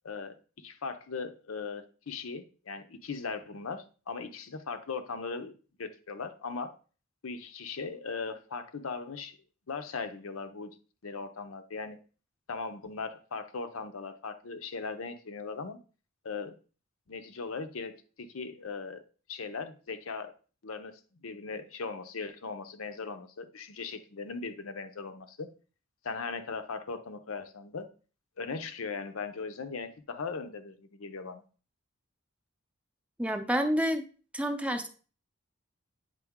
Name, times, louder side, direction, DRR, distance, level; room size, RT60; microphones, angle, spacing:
voice 1, 0.0-5.5 5.8-6.7 7.2-9.4 9.7-10.8 11.0-12.0 12.5-15.8 16.2-16.6 17.1-19.0 19.3-20.3 20.6-25.5 26.0-27.9 28.4-31.4, left 4 dB, 85° left, 0.7 m, -39 dB
voice 2, 33.2-34.0 34.3-34.9, equal, 5° right, 0.5 m, -28 dB
8.3 x 3.7 x 3.6 m
head